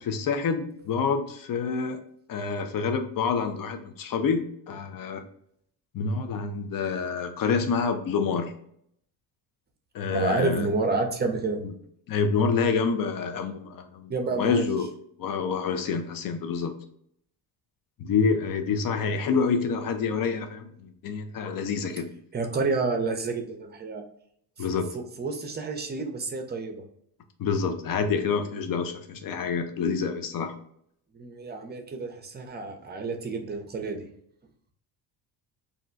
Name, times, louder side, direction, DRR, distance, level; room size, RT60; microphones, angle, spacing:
voice 1, 0.0-2.0 2.3-5.2 5.9-8.5 9.9-10.7 11.6-11.7 12.1-14.1 14.4-14.9 15.2-16.8 18.0-22.1 24.6-24.9 27.4-30.5, left 5 dB, 50° left, 7 dB, 0.6 m, -27 dB
voice 2, 10.1-11.6 14.1-14.7 22.3-24.0 24.9-26.8 31.1-34.1, right 3 dB, 25° right, 4 dB, 0.6 m, -29 dB
2.5 x 2.2 x 3.8 m, 0.69 s
cardioid pair, 85°, 44 cm